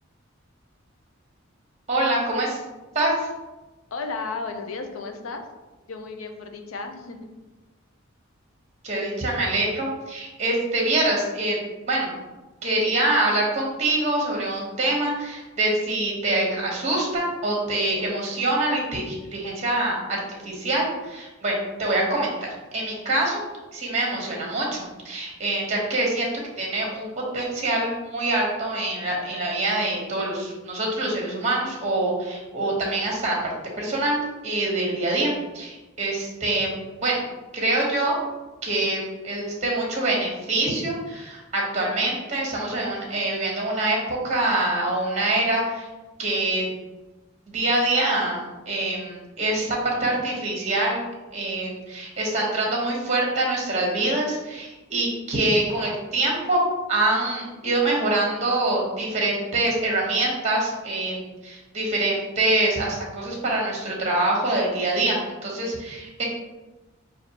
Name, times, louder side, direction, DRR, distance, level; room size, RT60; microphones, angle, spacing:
voice 1, 1.9-2.6 2.9-3.3 8.8-11.6 11.9-12.1 12.6-23.4 23.7-26.3 26.6-27.1 27.3-33.4 33.8-36.7 37.0-37.2 37.5-38.2 38.6-45.9 46.2-46.7 47.5-51.0 51.3-56.6 56.9-66.2, right 2 dB, 35° right, -2 dB, 1.0 m, -25 dB
voice 2, 3.9-5.4 5.9-7.3, left 4 dB, 75° left, 5 dB, 0.5 m, -33 dB
5.8 x 2.5 x 2.9 m, 1.1 s
head